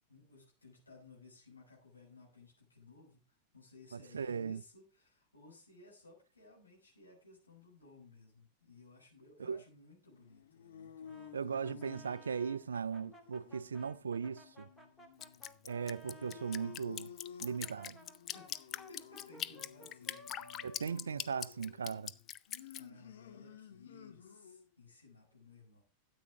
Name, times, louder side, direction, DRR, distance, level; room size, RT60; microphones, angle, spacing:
voice 1, 0.1-12.2 18.3-21.4 22.7-25.8, left 3 dB, 80° left, 6.2 m, -59 dB
voice 2, 3.9-4.6 9.4-9.6 11.3-14.7 15.6-17.1 17.4-18.0 20.6-22.1, right 6 dB, 70° right, 0.4 m, -38 dB
sound 1, 10.2-24.7, left 9 dB, 60° left, 1.5 m, -55 dB
Brass instrument, 11.0-16.8 17.4-22.2, equal, 10° left, 2.6 m, -58 dB
Drip, 15.2-22.8, left 10 dB, 30° left, 0.5 m, -42 dB
13.0 x 8.7 x 3.6 m
figure-of-eight pair, 90°, 0 cm